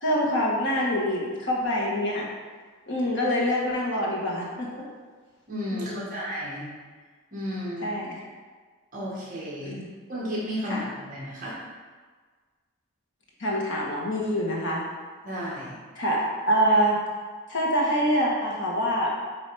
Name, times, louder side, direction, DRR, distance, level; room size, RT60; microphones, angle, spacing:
voice 1, 0.0-2.3 2.9-4.9 5.7-6.2 7.8-8.2 9.6-9.9 10.7-10.8 13.4-14.8 15.9-17.0 17.5-19.1, equal, 55° left, -4 dB, 1.6 m, -25 dB
voice 2, 5.5-6.7 7.3-7.9 8.9-9.7 10.1-11.6 15.2-15.8, equal, 35° right, -7 dB, 1.6 m, -33 dB
8.6 x 3.1 x 4.9 m, 1.5 s
head